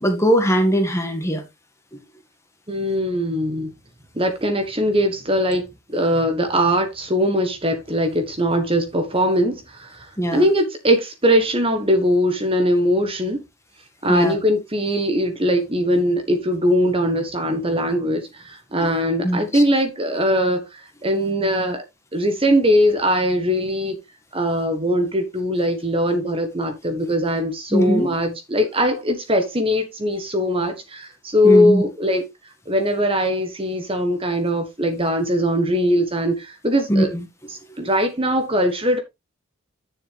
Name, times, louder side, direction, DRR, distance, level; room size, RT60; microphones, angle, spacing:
voice 1, 0.0-1.4 10.2-10.4 14.1-14.4 18.8-18.9 19.2-19.6 27.7-28.1 31.4-31.8 36.9-37.2, equal, 15° left, 1.9 m, -20 dB
voice 2, 2.7-3.7 4.1-13.4 14.0-21.8 22.1-24.0 24.3-32.2 32.7-37.1 37.5-39.0, equal, 25° right, 1.3 m, -21 dB
10.5 x 6.8 x 3.4 m
head